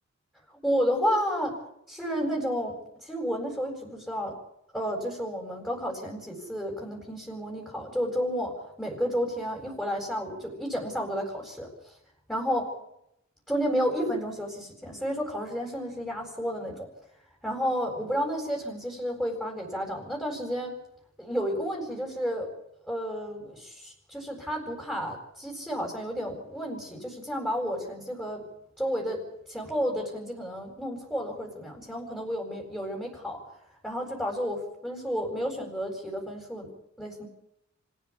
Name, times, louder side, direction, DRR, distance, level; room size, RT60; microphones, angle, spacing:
voice 1, 0.6-1.6 1.9-4.3 4.7-11.9 12.3-12.7 13.5-16.9 17.4-20.7 21.2-22.5 22.9-28.5 28.8-33.4 33.8-36.7 37.0-37.3, equal, 5° left, -1 dB, 8.0 m, -31 dB
26.5 x 16.0 x 8.8 m, 0.79 s
wide cardioid pair, 80°, 29 cm